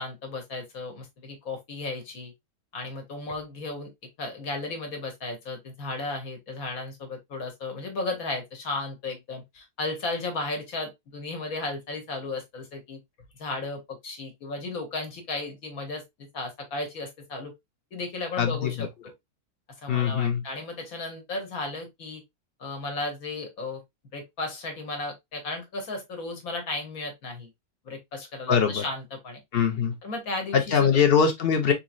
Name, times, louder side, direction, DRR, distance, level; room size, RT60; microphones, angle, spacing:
voice 1, 0.0-2.3 2.7-3.9 4.2-13.0 13.4-16.0 16.3-17.5 17.9-19.1 19.8-22.2 22.6-23.8 24.1-27.5 27.8-29.4 30.0-31.0, left 3 dB, 70° left, 1.5 m, -34 dB
voice 2, 18.4-18.9 19.9-20.4 28.5-28.8 29.5-29.9 30.5-31.7, left 7 dB, 55° left, 0.7 m, -22 dB
3.8 x 3.0 x 2.4 m
omnidirectional pair, 1.6 m